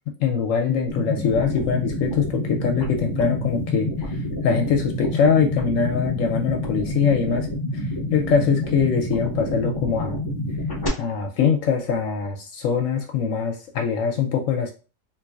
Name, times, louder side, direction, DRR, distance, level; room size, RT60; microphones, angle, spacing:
voice 1, 0.1-4.2 4.4-7.5 7.7-10.2 11.0-14.7, left 6 dB, 70° left, 4 dB, 0.9 m, -23 dB
sound 1, 0.9-10.9, left 1 dB, 25° left, 0.5 m, -28 dB
3.9 x 2.7 x 2.3 m, 0.33 s
omnidirectional pair, 1.5 m